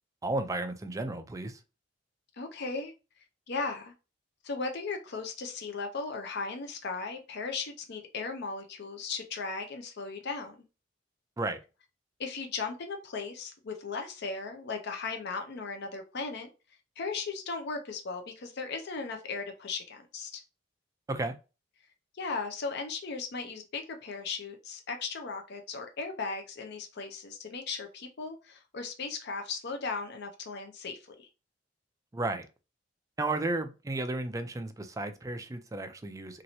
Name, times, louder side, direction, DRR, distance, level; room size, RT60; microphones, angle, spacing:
voice 1, 0.2-1.6 11.4-11.6 21.1-21.3 32.1-32.5 33.2-36.4, right 2 dB, 15° right, 0.4 m, -33 dB
voice 2, 2.3-2.9 3.5-3.9 4.4-10.6 12.2-16.5 17.0-20.4 22.1-31.3, left 4 dB, 60° left, 0.6 m, -37 dB
3.0 x 2.9 x 2.7 m
head